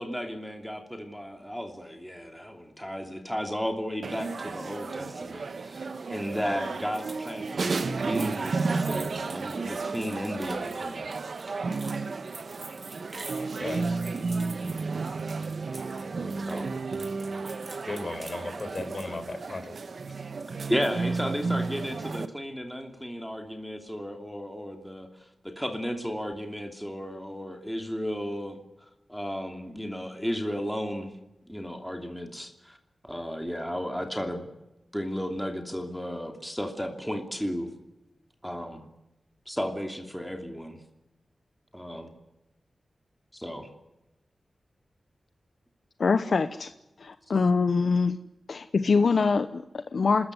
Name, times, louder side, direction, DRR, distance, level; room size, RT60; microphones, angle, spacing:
voice 1, 0.0-11.1 16.4-16.7 20.7-28.6 29.1-31.1 31.4-32.8 33.0-34.5 34.9-37.7 38.4-38.8 39.5-40.8 41.7-42.1 43.3-43.7, equal, ahead, 4 dB, 2.9 m, -34 dB
sound 1, 4.0-22.3, right 4 dB, 60° right, 1.3 m, -32 dB
sound 2, 6.9-16.0 16.3-19.2, right 2 dB, 35° right, 3.7 m, -47 dB
voice 2, 13.6-14.0 15.7-16.1 17.9-19.7 20.1-20.2, left 2 dB, 45° left, 7 dB, 4.6 m, -36 dB
voice 3, 46.0-46.7 47.0-48.2 48.5-50.3, left 4 dB, 60° left, 10 dB, 0.9 m, -24 dB
29.0 x 13.5 x 9.7 m, 0.93 s
wide cardioid pair, 120°, 0 cm